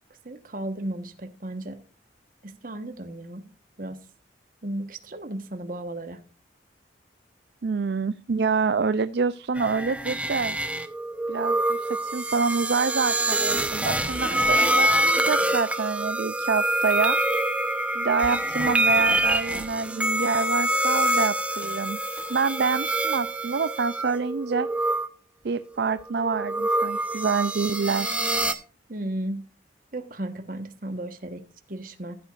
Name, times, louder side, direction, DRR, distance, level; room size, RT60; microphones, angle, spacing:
voice 1, 0.2-1.8 2.4-3.4 3.8-4.0 4.6-6.2 28.9-29.4 29.9-32.2, right 1 dB, 45° right, 1.3 m, -34 dB
voice 2, 7.6-10.6 11.3-17.2 17.9-24.7 25.4-28.4, right 5 dB, 65° right, 0.4 m, -27 dB
sound 1, 9.6-25.1 25.9-28.5, right 1 dB, 5° right, 0.8 m, -25 dB
14.5 x 8.4 x 2.5 m
head